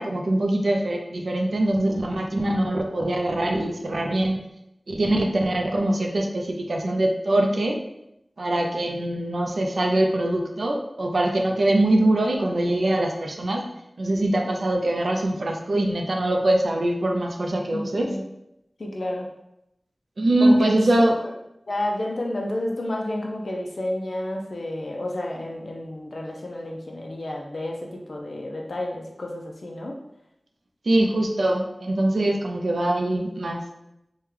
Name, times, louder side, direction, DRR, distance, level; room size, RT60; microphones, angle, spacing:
voice 1, 0.0-4.4 4.9-7.8 8.4-13.6 14.0-18.1 20.2-21.1 30.9-33.6, right 1 dB, 85° right, 2 dB, 0.4 m, -23 dB
voice 2, 17.7-18.2 18.8-19.3 20.4-20.7 21.2-21.3 21.7-30.0, left 1 dB, 75° left, 0 dB, 0.4 m, -30 dB
3.5 x 2.2 x 3.1 m, 0.85 s
wide cardioid pair, 55°, 0 cm